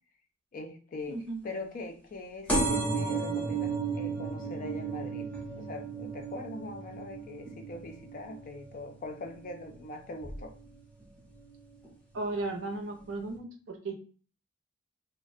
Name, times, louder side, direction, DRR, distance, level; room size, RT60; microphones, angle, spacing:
voice 1, 0.5-5.3 5.6-10.5, left 2 dB, 45° left, 5 dB, 0.4 m, -42 dB
voice 2, 1.1-1.4 12.1-13.9, right 2 dB, 70° right, 3 dB, 0.5 m, -35 dB
sound 1, 2.5-9.7 10.2-10.7 11.5-11.6 11.8-11.9 12.2-12.3, right 4 dB, 10° left, 0.7 m, -34 dB
2.4 x 2.1 x 2.5 m, 0.40 s
head